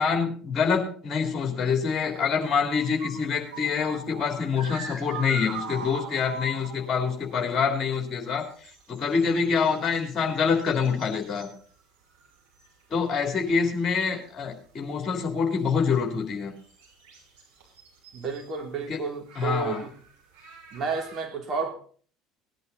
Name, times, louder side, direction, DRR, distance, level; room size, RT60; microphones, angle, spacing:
voice 1, 0.0-8.5 8.9-11.5 12.9-16.5 18.9-19.0 19.3-19.8, left 5 dB, 35° left, 3 dB, 3.4 m, -26 dB
sound 1, 1.7-7.3 7.6-7.7 7.9-11.8 12.1-13.1 13.5-14.1 14.5-14.6 15.6-15.7 15.9-16.0 16.4-18.5 19.3-21.2, right 3 dB, 55° right, 6.6 m, -43 dB
voice 2, 18.1-19.9 20.7-21.7, right 4 dB, 40° right, 2 dB, 3.2 m, -31 dB
18.0 x 11.0 x 4.2 m, 0.43 s
figure-of-eight pair, 65°, 0 cm